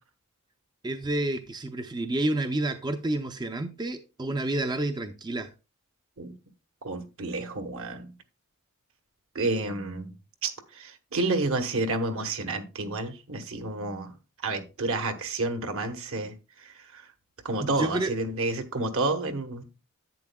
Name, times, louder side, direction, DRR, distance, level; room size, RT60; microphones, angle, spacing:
voice 1, 0.8-5.5 17.6-18.1, right 1 dB, 20° right, 0.5 m, -29 dB
voice 2, 6.8-8.1 9.3-10.1 10.4-14.1 14.4-17.1 17.4-19.6, right 2 dB, 65° right, 1.2 m, -30 dB
11.0 x 8.3 x 2.2 m
head